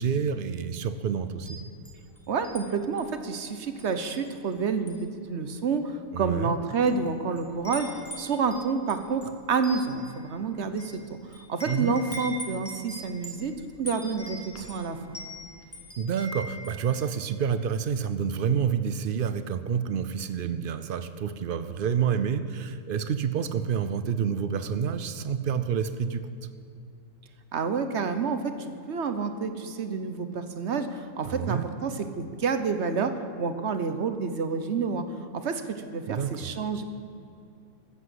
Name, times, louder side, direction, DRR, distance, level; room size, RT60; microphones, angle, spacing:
voice 1, 0.0-1.6 6.1-6.5 11.6-11.9 16.0-26.3 31.2-31.7 36.1-36.5, right 7 dB, 70° right, 11 dB, 0.5 m, -28 dB
Wind chime, 1.3-2.6 3.0-3.2 3.8-4.5 4.8-5.1 5.8-5.9 6.6-7.1 7.3-16.8, equal, 10° left, 2.0 m, -42 dB
voice 2, 2.3-10.9 11.2-15.0 27.5-35.0 35.3-36.8, right 5 dB, 55° right, 9 dB, 1.0 m, -29 dB
14.0 x 8.1 x 7.7 m, 2.6 s
omnidirectional pair, 1.6 m